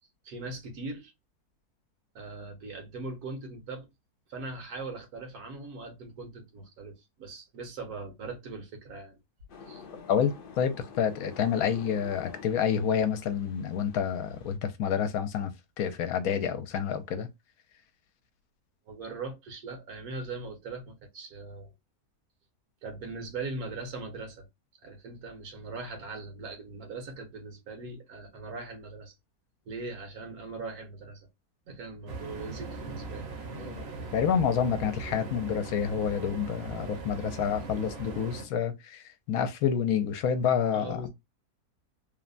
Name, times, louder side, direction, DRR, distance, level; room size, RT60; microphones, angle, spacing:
voice 1, 0.2-1.1 2.1-3.9 4.3-9.2 9.7-9.8 18.9-21.7 22.8-24.5 24.8-29.1 29.7-31.3 31.7-33.3 33.6-33.7 40.7-41.1, right 3 dB, 75° right, 1.5 m, -40 dB
sound 1, 9.5-14.6, left 5 dB, 55° left, 0.6 m, -48 dB
voice 2, 10.1-15.5 15.8-17.3 33.6-33.8 34.1-41.1, left 7 dB, 75° left, 1.0 m, -28 dB
sound 2, 32.1-38.5, right 3 dB, 50° right, 0.9 m, -40 dB
3.2 x 2.1 x 2.4 m
omnidirectional pair, 1.6 m